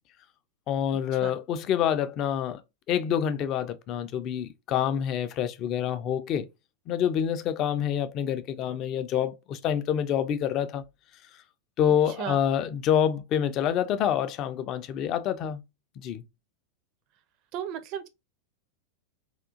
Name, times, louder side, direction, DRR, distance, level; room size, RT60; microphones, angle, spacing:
voice 1, 0.7-2.6 2.9-6.5 6.9-10.8 11.8-15.6 16.0-16.2, left 9 dB, 35° left, 0.4 m, -27 dB
voice 2, 17.5-18.1, right 9 dB, 40° right, 0.5 m, -34 dB
3.5 x 2.4 x 2.5 m
figure-of-eight pair, 90°, 0 cm